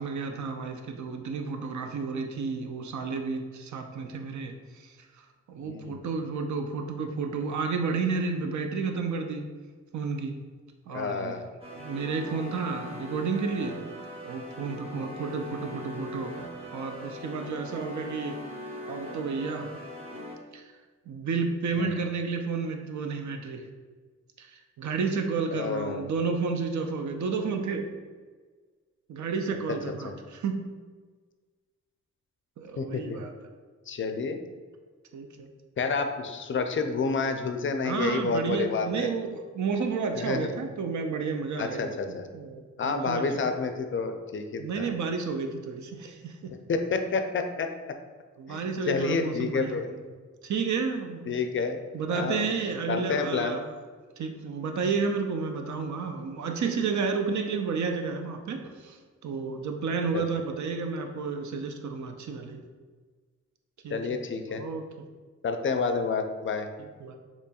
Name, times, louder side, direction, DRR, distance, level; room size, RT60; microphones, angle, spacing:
voice 1, 0.0-5.0 5.5-9.5 9.9-10.4 10.9-11.4 11.8-13.9 14.2-18.4 18.9-19.7 20.5-20.7 21.1-23.7 24.4-27.9 29.1-30.6 32.6-33.3 35.1-35.5 37.8-43.2 44.6-46.5 48.4-50.0 50.4-51.3 51.9-53.6 54.2-62.6 63.8-64.0 64.5-64.8 66.8-67.2, right 4 dB, 70° right, 5 dB, 0.5 m, -31 dB
voice 2, 5.6-6.0 10.9-11.4 15.6-15.7 21.8-21.9 25.5-26.0 29.7-29.8 30.0-30.1 32.8-33.2 33.9-34.4 35.8-39.1 40.2-40.5 41.6-42.3 42.8-44.9 46.7-47.7 48.5-49.9 51.3-51.8 52.1-52.5 52.9-53.6 60.1-60.2 63.9-64.6 65.4-66.7, left 4 dB, 40° left, 6 dB, 0.4 m, -29 dB
sound 1, 11.6-20.4, equal, 20° right, 0.9 m, -40 dB
4.2 x 2.9 x 2.3 m, 1.5 s
cardioid pair, 70°, 30 cm